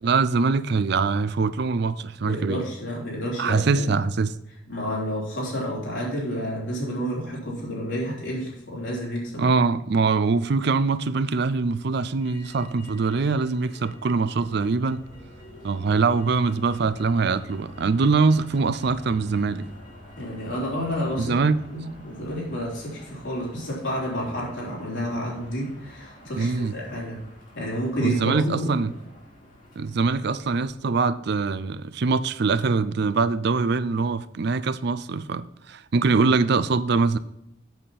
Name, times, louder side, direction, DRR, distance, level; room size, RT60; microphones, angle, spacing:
voice 1, 0.0-2.7 3.4-4.3 9.4-15.0 15.6-19.7 21.2-21.6 26.4-26.7 28.0-28.9 29.8-37.2, right 4 dB, 60° right, 0.4 m, -23 dB
voice 2, 2.2-3.9 4.7-9.4 20.2-21.3 21.7-27.2 27.5-28.7, equal, 80° left, 3.7 m, -30 dB
Motor vehicle (road), 12.2-30.7, left 1 dB, 45° left, 2.4 m, -47 dB
7.8 x 7.2 x 4.2 m
head